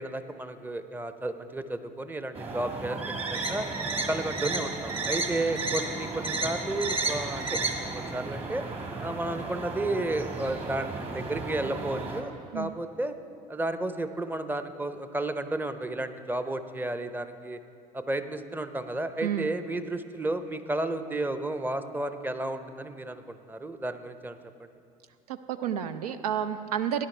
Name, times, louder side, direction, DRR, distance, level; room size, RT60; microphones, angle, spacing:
voice 1, 0.0-3.7 4.1-8.6 9.0-13.1 13.5-17.6 17.9-24.7, right 2 dB, 10° right, 10 dB, 0.7 m, -32 dB
sound 1, 2.3-12.2, right 3 dB, 30° right, 1.7 m, -33 dB
voice 2, 25.3-27.1, right 9 dB, 80° right, 10 dB, 0.4 m, -30 dB
17.0 x 10.5 x 3.3 m, 2.4 s
figure-of-eight pair, 60°, 19 cm